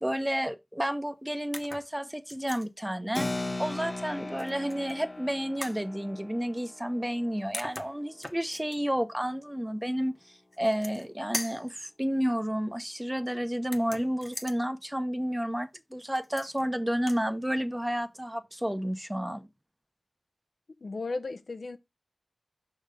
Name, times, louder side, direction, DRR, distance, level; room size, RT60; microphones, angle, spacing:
voice 1, 0.0-19.5, equal, 10° right, 0.9 m, -31 dB
sound 1, 1.5-1.9 2.3-2.7 4.4-5.0 5.6-5.8 7.2-7.3 7.5-8.8 10.5-11.1 11.3-11.7 13.6-14.6 16.1-16.7 17.0-17.2, left 1 dB, 15° left, 1.0 m, -40 dB
Keyboard (musical), 3.1-9.2, left 2 dB, 40° left, 0.8 m, -39 dB
voice 2, 20.8-21.8, left 3 dB, 70° left, 0.8 m, -35 dB
6.2 x 3.8 x 5.2 m
wide cardioid pair, 70°, 0 cm